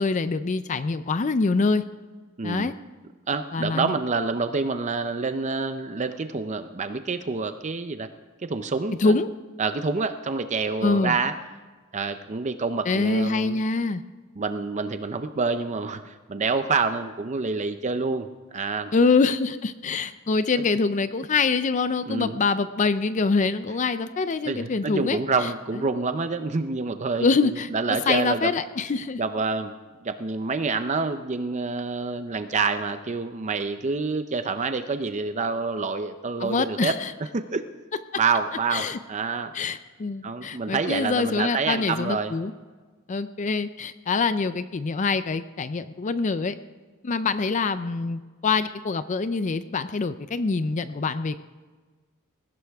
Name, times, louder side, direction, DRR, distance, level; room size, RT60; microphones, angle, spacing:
voice 1, 0.0-1.8 2.4-2.7 3.5-3.9 9.0-9.3 10.8-11.2 12.9-14.0 18.9-25.5 27.2-27.7 28.1-29.2 36.4-37.1 38.7-39.0 39.5-42.5 43.1-46.6 47.0-51.4, left 4 dB, 35° left, 12 dB, 0.4 m, -25 dB
voice 2, 2.4-2.7 3.3-8.1 8.4-9.2 9.6-11.3 11.9-13.6 14.4-18.9 22.1-22.4 24.4-28.5 29.2-29.7 30.0-37.0 37.3-37.6 38.2-39.5 40.2-42.3, right 4 dB, 35° right, 9 dB, 0.6 m, -27 dB
20.0 x 16.0 x 3.5 m, 1.4 s
head